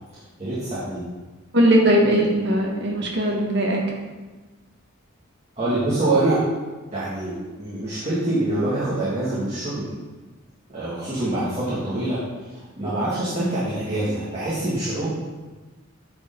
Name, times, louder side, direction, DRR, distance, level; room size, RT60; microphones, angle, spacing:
voice 1, 0.4-1.0 5.6-6.4 6.9-9.9 10.7-12.2 12.8-15.1, right 2 dB, 30° right, -10 dB, 1.8 m, -25 dB
voice 2, 1.5-3.8, right 1 dB, 55° right, -1 dB, 1.4 m, -19 dB
9.5 x 4.5 x 3.7 m, 1.3 s
head